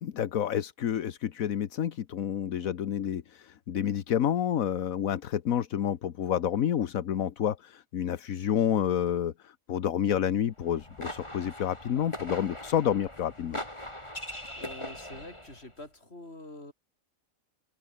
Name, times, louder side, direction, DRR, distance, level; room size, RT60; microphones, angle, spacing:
voice 1, 0.0-13.6, left 9 dB, 75° left, 1.4 m, -29 dB
sound 1, 10.6-15.7, left 1 dB, 20° left, 5.7 m, -41 dB
voice 2, 14.6-16.7, left 2 dB, 50° left, 6.1 m, -45 dB
omnidirectional pair, 1.4 m